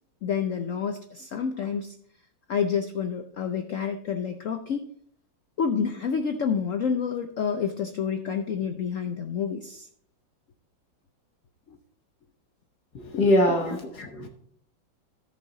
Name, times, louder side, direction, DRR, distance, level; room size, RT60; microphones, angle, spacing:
voice 1, 0.2-1.9 2.5-4.9 5.6-9.9 11.7-11.8 13.0-13.2 13.7-13.8, left 6 dB, 75° left, 6 dB, 0.7 m, -29 dB
voice 2, 13.2-14.3, left 1 dB, 60° left, 3 dB, 1.6 m, -22 dB
14.0 x 5.5 x 3.8 m, 0.64 s
omnidirectional pair, 2.1 m